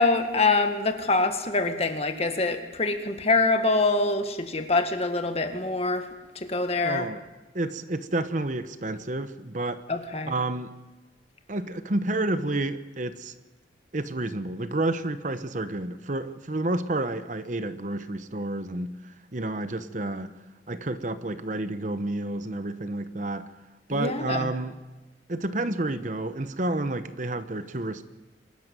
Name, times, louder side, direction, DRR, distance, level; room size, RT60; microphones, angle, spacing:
voice 1, 0.0-6.1 6.4-7.1 9.9-10.3 23.9-24.5, left 3 dB, 35° left, 1.8 m, -25 dB
voice 2, 6.8-7.2 7.5-9.8 10.3-10.7 11.5-13.3 13.9-20.3 20.7-23.5 23.9-24.8 25.3-28.0, right 2 dB, 45° right, 1.0 m, -30 dB
23.5 x 13.5 x 9.2 m
head